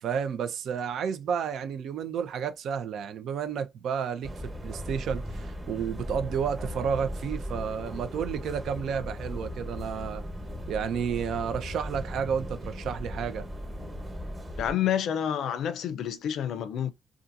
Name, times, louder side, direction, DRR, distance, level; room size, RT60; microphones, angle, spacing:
voice 1, 0.0-10.2 10.7-13.4, right 7 dB, 75° right, 0.6 m, -31 dB
sound 1, 4.2-14.7, equal, 15° right, 1.1 m, -37 dB
voice 2, 14.6-16.9, left 9 dB, 75° left, 0.5 m, -28 dB
2.7 x 2.4 x 2.5 m
cardioid pair, 90°, 0 cm